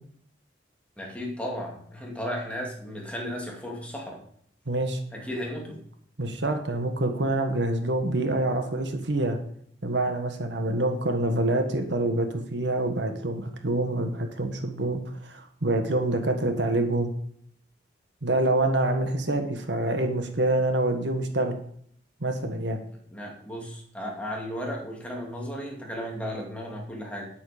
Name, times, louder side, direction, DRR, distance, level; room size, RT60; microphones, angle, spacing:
voice 1, 1.0-4.2 5.1-5.8 23.1-27.3, equal, 5° left, -1 dB, 2.5 m, -35 dB
voice 2, 4.7-5.0 6.2-9.4 9.8-17.1 18.2-21.6 22.2-22.8, right 2 dB, 80° right, 6 dB, 1.5 m, -26 dB
9.5 x 8.6 x 5.1 m, 0.64 s
head